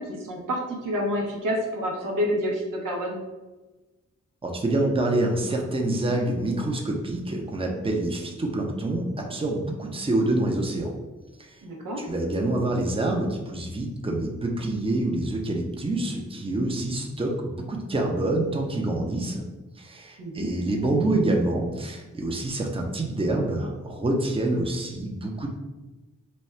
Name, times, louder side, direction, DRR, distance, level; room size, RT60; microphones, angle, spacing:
voice 1, 0.0-3.2 11.6-12.1 20.2-20.5, equal, 80° right, -1 dB, 0.9 m, -28 dB
voice 2, 4.4-10.9 11.4-11.6 12.0-19.4 19.8-25.5, right 2 dB, 15° right, 1 dB, 0.7 m, -26 dB
4.2 x 2.3 x 3.2 m, 1.2 s
cardioid pair, 55°, 31 cm